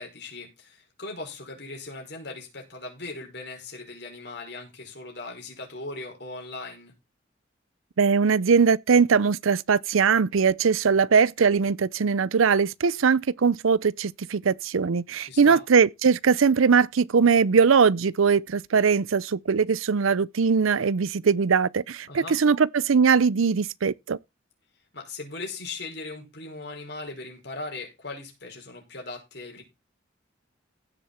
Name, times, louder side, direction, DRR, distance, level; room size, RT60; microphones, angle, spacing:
voice 1, 0.0-6.9 15.2-15.6 22.1-22.4 24.9-29.6, left 3 dB, 55° left, 5.5 m, -39 dB
voice 2, 8.0-24.2, right 5 dB, 90° right, 0.5 m, -21 dB
16.0 x 7.0 x 4.3 m
head